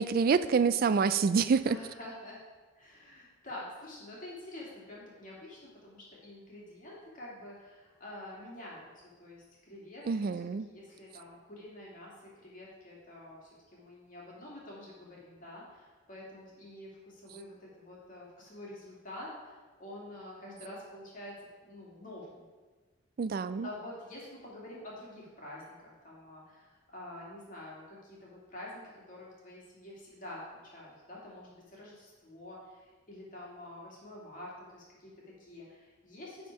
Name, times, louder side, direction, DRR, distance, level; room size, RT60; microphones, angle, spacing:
voice 1, 0.0-1.8 10.1-10.7 23.2-23.7, right 5 dB, 50° right, 14 dB, 0.3 m, -27 dB
voice 2, 1.7-2.4 2.8-21.3 21.6-22.4 23.6-36.5, left 1 dB, 45° left, -5 dB, 2.4 m, -47 dB
10.5 x 4.3 x 4.7 m, 1.4 s
head